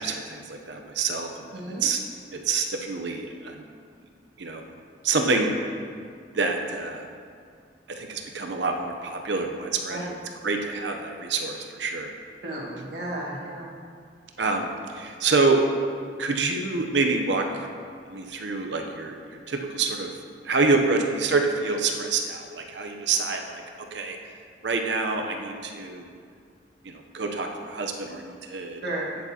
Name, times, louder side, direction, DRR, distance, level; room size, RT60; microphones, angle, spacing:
voice 1, 0.0-2.0 2.3-3.6 4.4-4.7 5.0-5.5 6.3-7.1 7.9-10.1 10.4-12.1 14.4-15.6 16.2-17.7 18.1-19.2 19.5-20.1 20.4-23.6 23.9-24.2 24.6-26.2 26.8-28.8, right 3 dB, 80° right, 3 dB, 0.7 m, -27 dB
voice 2, 1.5-1.9 9.9-10.0 12.4-13.7 28.8-29.1, right 1 dB, 65° right, -4 dB, 1.7 m, -33 dB
9.5 x 8.2 x 2.9 m, 2.2 s
head